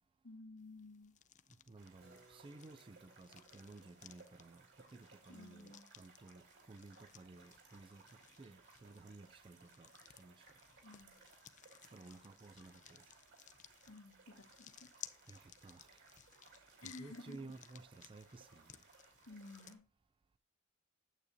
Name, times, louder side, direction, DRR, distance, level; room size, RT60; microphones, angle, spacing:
voice 1, 0.2-1.2 5.3-5.9 10.8-11.2 13.9-14.9 16.8-17.5 19.3-19.8, left 2 dB, 90° left, 1.7 m, -54 dB
sound 1, 0.6-19.7, left 10 dB, 35° left, 0.5 m, -60 dB
voice 2, 1.7-10.6 11.9-13.1 15.3-16.0 16.5-18.8, right 3 dB, 25° right, 0.4 m, -56 dB
sound 2, 1.8-19.8, right 4 dB, 60° right, 3.5 m, -64 dB
Keyboard (musical), 2.0-7.6, right 2 dB, 85° right, 4.5 m, -72 dB
9.2 x 8.3 x 2.7 m
head